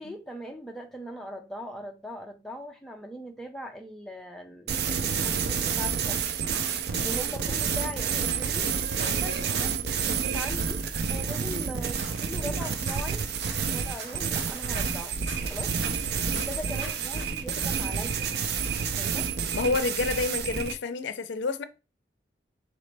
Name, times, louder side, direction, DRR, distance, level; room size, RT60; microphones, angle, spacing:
voice 1, 0.0-6.2 7.0-8.7 9.0-9.7 10.0-10.8 11.1-13.2 13.7-15.2 15.5-15.8 16.5-18.3 18.6-19.3, equal, ahead, 0.4 m, -40 dB
sound 1, 4.7-20.8, right 6 dB, 60° right, 0.4 m, -29 dB
sound 2, 6.4-17.5, right 4 dB, 75° right, 0.9 m, -43 dB
voice 2, 19.5-21.6, left 4 dB, 85° left, 0.4 m, -29 dB
4.0 x 3.1 x 3.3 m
head